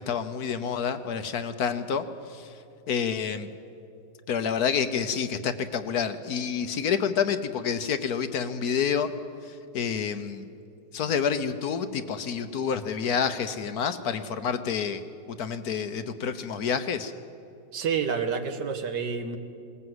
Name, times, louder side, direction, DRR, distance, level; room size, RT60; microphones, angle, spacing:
voice 1, 0.0-2.5 2.9-3.5 4.3-9.1 9.4-10.5 10.9-15.0 15.3-17.1, left 7 dB, 65° left, 10 dB, 1.3 m, -28 dB
voice 2, 17.7-19.4, right 6 dB, 75° right, 8 dB, 1.9 m, -28 dB
21.0 x 19.5 x 8.0 m, 2.5 s
omnidirectional pair, 1.9 m